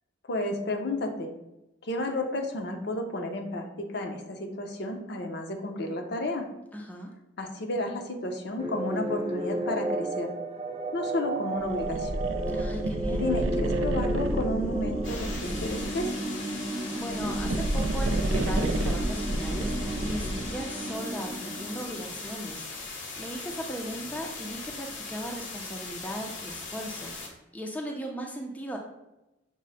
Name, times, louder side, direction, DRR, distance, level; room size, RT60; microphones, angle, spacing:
voice 1, 0.3-1.3 1.8-6.5 7.4-10.3 10.9-12.3 13.1-16.1, left 1 dB, 60° left, 4 dB, 0.6 m, -32 dB
voice 2, 6.7-7.1 12.5-13.3 16.9-28.8, equal, 10° left, 1 dB, 0.4 m, -38 dB
sound 1, 8.6-22.3, right 1 dB, 35° right, 0.9 m, -33 dB
sound 2, 11.6-16.1 17.0-20.7, right 1 dB, 85° right, 0.4 m, -30 dB
sound 3, 15.0-27.3, left 3 dB, 80° left, 1.0 m, -39 dB
6.2 x 2.1 x 4.0 m, 0.94 s
head